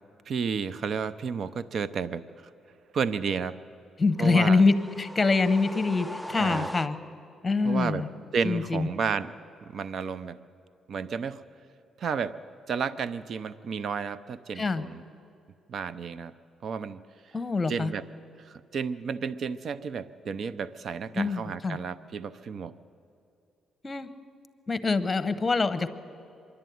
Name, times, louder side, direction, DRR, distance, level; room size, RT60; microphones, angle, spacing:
voice 1, 0.3-2.2 2.9-3.6 4.2-4.6 6.4-6.7 7.6-8.0 8.3-9.3 9.7-10.4 10.9-11.4 12.0-12.4 12.7-15.0 15.7-16.3 16.6-17.0 17.7-18.0 18.4-22.7, right 6 dB, 55° right, 14 dB, 0.6 m, -32 dB
voice 2, 4.0-7.0 7.4-8.1 8.4-8.9 14.6-14.8 17.3-17.9 21.1-21.8 23.8-24.1 24.7-25.9, left 4 dB, 25° left, 13 dB, 1.1 m, -25 dB
sound 1, 4.2-7.4, equal, ahead, 0.4 m, -40 dB
24.5 x 11.5 x 9.3 m, 2.6 s
cardioid pair, 90°, 0 cm